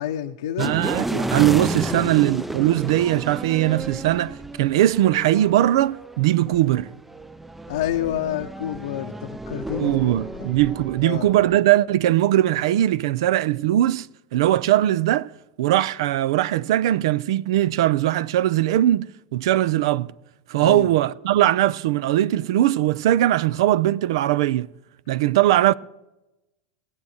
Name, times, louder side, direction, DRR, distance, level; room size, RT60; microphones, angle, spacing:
voice 1, 0.0-0.8 1.9-2.1 7.7-10.5 11.0-11.3 20.6-20.9, left 11 dB, 80° left, 0.8 m, -29 dB
sound 1, 0.6-11.6, right 1 dB, 5° right, 0.5 m, -32 dB
voice 2, 0.6-6.9 9.8-14.1 14.3-15.3 15.6-19.1 19.3-20.1 20.5-24.7 25.1-25.7, right 14 dB, 75° right, 0.5 m, -20 dB
17.0 x 7.3 x 9.4 m
supercardioid pair, 120°, 3 cm